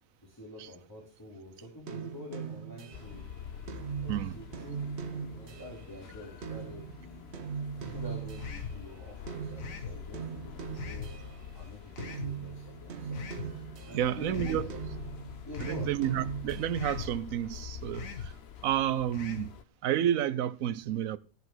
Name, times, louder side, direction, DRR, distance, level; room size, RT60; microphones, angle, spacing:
voice 1, 0.2-3.2 4.0-7.3 7.8-11.1 11.5-13.3 13.9-14.8 15.5-15.9, left 1 dB, 15° left, 3.6 m, -47 dB
sound 1, 1.9-9.0 9.3-11.6 12.0-14.3 14.7-16.8, right 7 dB, 55° right, 1.1 m, -40 dB
sound 2, 2.9-19.6, left 8 dB, 60° left, 0.8 m, -45 dB
sound 3, 8.4-8.8 9.6-10.0 10.8-11.1 12.0-12.3 13.1-13.5 14.3-14.7 15.5-15.9 16.7-17.1 17.9-18.3 19.1-19.5, left 6 dB, 80° left, 1.5 m, -41 dB
voice 2, 13.9-14.7 15.6-18.3 18.6-19.6 19.8-21.2, right 11 dB, 90° right, 1.1 m, -30 dB
14.5 x 5.6 x 6.1 m
omnidirectional pair, 1.4 m